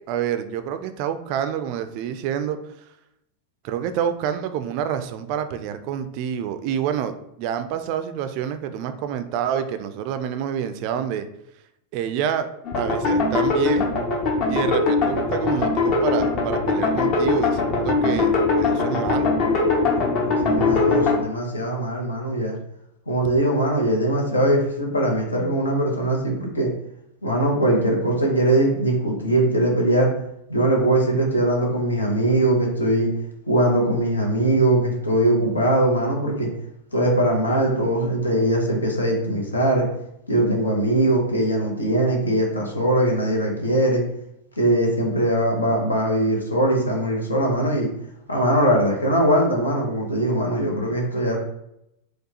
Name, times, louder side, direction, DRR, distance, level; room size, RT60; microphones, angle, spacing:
voice 1, 0.1-2.6 3.6-11.3 11.9-12.5 12.8-13.9 14.5-19.3, right 9 dB, 45° right, 9 dB, 0.3 m, -27 dB
sound 1, 12.6-21.2, left 3 dB, 40° left, 0.8 m, -21 dB
voice 2, 20.4-22.6 23.1-26.7 27.2-30.1 30.5-33.1 33.5-36.5 36.9-39.9 40.3-44.0 44.6-47.9 48.3-51.4, right 1 dB, 75° left, 0 dB, 0.9 m, -21 dB
4.4 x 2.3 x 2.8 m, 0.81 s
figure-of-eight pair, 90°, 0 cm